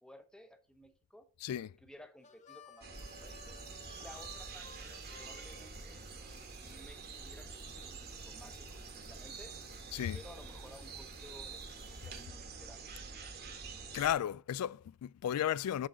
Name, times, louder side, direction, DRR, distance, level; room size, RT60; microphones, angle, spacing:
voice 1, 0.0-1.3 1.8-6.0 6.6-9.5 10.1-12.9, equal, 5° left, 0.8 m, -56 dB
Harmonica, 2.2-6.5, left 5 dB, 30° left, 0.7 m, -57 dB
sound 1, 2.8-14.1, right 4 dB, 45° right, 1.3 m, -47 dB
sound 2, 2.9-12.3, left 7 dB, 50° left, 1.7 m, -65 dB
voice 2, 13.9-15.9, left 10 dB, 90° left, 0.3 m, -34 dB
11.0 x 3.8 x 3.9 m
head